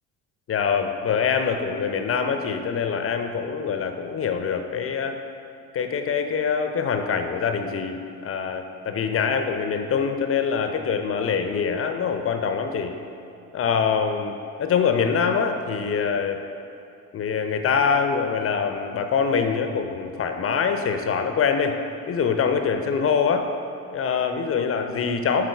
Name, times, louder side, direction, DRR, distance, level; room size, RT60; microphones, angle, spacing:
voice 1, 0.5-5.1 5.7-12.9 13.5-16.4 17.1-21.7 22.1-23.5 23.9-25.5, left 6 dB, 35° left, 6 dB, 0.7 m, -24 dB
8.2 x 3.7 x 4.5 m, 2.7 s
hypercardioid pair, 65°, 41 cm